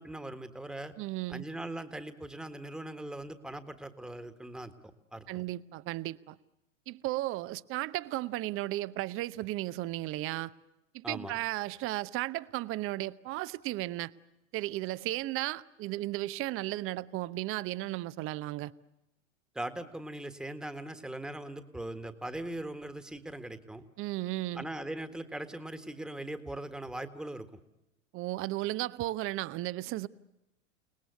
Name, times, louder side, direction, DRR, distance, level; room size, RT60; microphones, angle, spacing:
voice 1, 0.0-0.9 1.3-4.7 5.1-5.3 11.0-11.3 19.6-23.8 24.5-27.5, right 1 dB, ahead, 1.6 m, -40 dB
voice 2, 1.0-1.4 5.3-6.4 6.9-10.5 10.9-14.1 14.5-18.7 24.0-24.7 28.1-30.1, right 17 dB, 35° right, 0.8 m, -35 dB
29.5 x 19.5 x 8.3 m
figure-of-eight pair, 90°, 38 cm